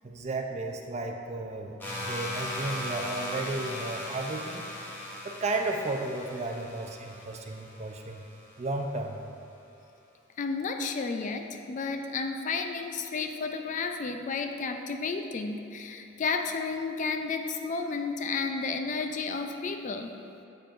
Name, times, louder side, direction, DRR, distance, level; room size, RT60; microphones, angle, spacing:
voice 1, 0.0-4.7 5.2-8.2 8.6-9.2, right 2 dB, 35° right, 3 dB, 0.5 m, -34 dB
sound 1, 1.8-8.6, left 1 dB, 10° left, 0.9 m, -38 dB
voice 2, 10.4-20.1, left 4 dB, 40° left, 6 dB, 0.3 m, -32 dB
7.6 x 6.7 x 2.5 m, 2.7 s
head